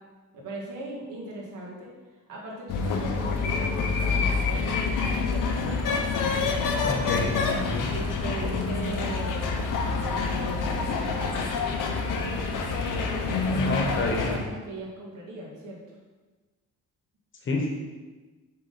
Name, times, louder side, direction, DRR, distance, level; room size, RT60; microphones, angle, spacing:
voice 1, 0.3-1.9 2.3-5.5 7.9-9.6 9.8-11.5 12.8-15.8, right 1 dB, 75° right, -3 dB, 2.1 m, -38 dB
sound 1, 2.7-14.4, left 4 dB, 75° left, 0.9 m, -27 dB
voice 2, 6.8-7.4 7.7-7.9 13.5-14.5 17.4-17.7, left 3 dB, 40° left, 1 dB, 1.1 m, -29 dB
6.6 x 3.6 x 5.6 m, 1.3 s
cardioid pair, 165°, 32 cm